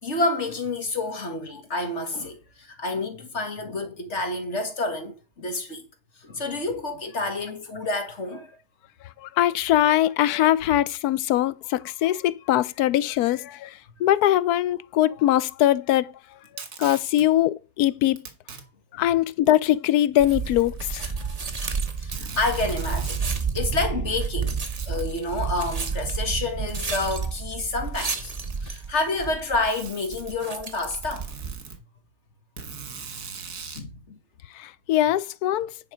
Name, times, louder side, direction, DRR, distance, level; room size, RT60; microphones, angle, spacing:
voice 1, 0.0-5.8 6.2-8.5 22.0-28.3 28.6-31.3 33.8-34.2, left 2 dB, 50° left, 2.0 m, -29 dB
voice 2, 9.2-16.1 16.8-18.2 18.9-21.1 34.5-35.7, left 13 dB, 80° left, 1.1 m, -22 dB
Packing tape duct tape, 16.4-17.2 18.2-18.6 19.5-19.6 20.5-21.4 21.7-21.8 22.1-23.3 24.7-25.1 26.3-26.4 27.4-27.5 28.3-28.9 29.6-30.3 31.0-31.8 32.6-33.9, right 5 dB, 80° right, 2.0 m, -39 dB
sound 1, 20.2-31.6, right 5 dB, 30° right, 1.0 m, -30 dB
9.5 x 5.3 x 5.0 m
omnidirectional pair, 1.6 m